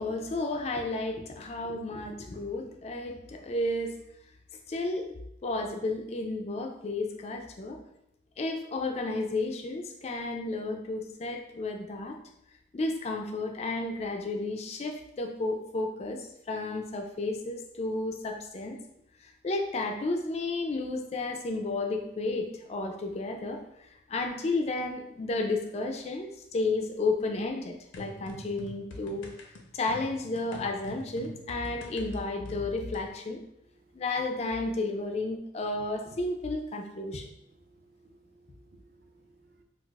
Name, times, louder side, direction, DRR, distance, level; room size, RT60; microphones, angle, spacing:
voice 1, 0.0-4.0 4.7-5.1 5.4-7.8 8.4-12.2 12.7-18.8 19.2-29.3 29.7-33.4 33.9-37.3, left 2 dB, 35° left, 3 dB, 0.3 m, -32 dB
sound 1, 27.9-33.1, left 1 dB, 90° left, 0.5 m, -45 dB
voice 2, 37.4-39.6, right 3 dB, 50° right, 5 dB, 0.3 m, -61 dB
2.4 x 2.3 x 3.9 m, 0.81 s
head